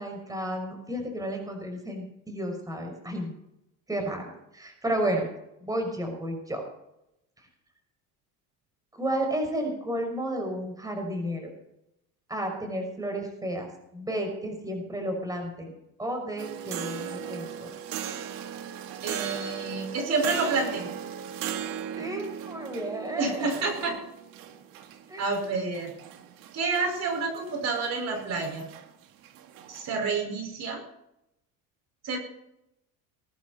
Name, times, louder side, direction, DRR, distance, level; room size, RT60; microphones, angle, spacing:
voice 1, 0.0-3.3 3.9-4.2 4.5-5.3 5.6-6.6 7.4-7.5 9.0-11.5 12.3-15.7 16.0-17.7 22.0-24.0 25.1-25.5, right 1 dB, 10° right, 2 dB, 6.0 m, -32 dB
sound 1, 16.4-29.9, right 9 dB, 75° right, 2.1 m, -38 dB
voice 2, 19.0-20.9 23.2-24.0 25.2-25.9 26.5-28.7 29.7-30.8 32.0-32.2, right 4 dB, 45° right, 2 dB, 5.1 m, -29 dB
22.0 x 11.5 x 4.2 m, 0.83 s
cardioid pair, 115°, 35 cm